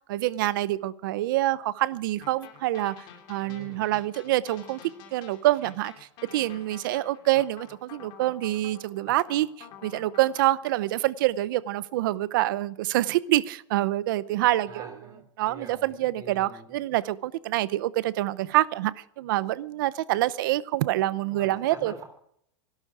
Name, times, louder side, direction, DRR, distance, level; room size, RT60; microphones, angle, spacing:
voice 1, 0.1-3.0 3.3-4.8 5.1-5.9 6.3-14.9 15.4-21.9, right 15 dB, 45° right, 0.7 m, -26 dB
sound 1, 2.2-10.8, left 9 dB, 30° left, 2.9 m, -49 dB
voice 2, 3.4-3.9 14.6-16.7 21.3-22.0, right 4 dB, 20° right, 3.5 m, -45 dB
24.5 x 12.5 x 4.8 m
supercardioid pair, 175°, 15 cm